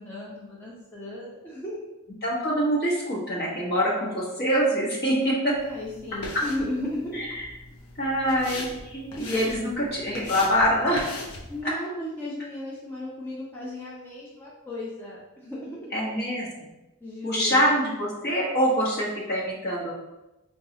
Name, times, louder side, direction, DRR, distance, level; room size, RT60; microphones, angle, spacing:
voice 1, 0.0-1.8 5.6-7.2 11.5-15.9 17.0-17.7, left 1 dB, 10° left, -6 dB, 0.5 m, -35 dB
voice 2, 2.2-5.5 6.3-6.4 7.2-7.5 8.0-11.1 15.9-16.5 17.2-19.9, equal, 45° left, -4 dB, 1.0 m, -25 dB
sound 1, 5.5-11.6, left 2 dB, 80° left, 0.7 m, -40 dB
5.1 x 2.3 x 2.8 m, 1.0 s
head